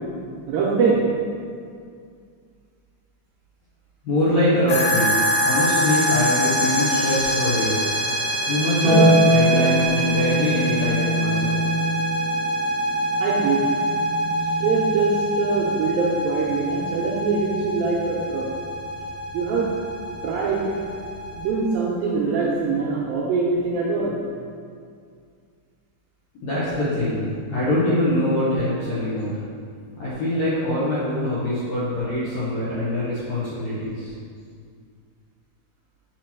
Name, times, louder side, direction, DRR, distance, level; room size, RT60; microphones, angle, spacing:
voice 1, 0.5-1.0 13.2-13.8 14.6-18.5 19.3-19.7 20.2-20.7 21.4-24.2, right 4 dB, 80° right, -4 dB, 2.1 m, -23 dB
voice 2, 4.0-5.1 5.4-7.9 8.5-11.6 26.4-29.3 30.0-34.1, left 1 dB, 70° left, -10 dB, 1.7 m, -23 dB
sound 1, 4.7-21.5, equal, 90° left, 3.2 m, -25 dB
Harp, 8.8-15.4 17.0-18.0, right 1 dB, 55° right, 1.8 m, -23 dB
5.8 x 4.5 x 4.4 m, 2.2 s
omnidirectional pair, 4.7 m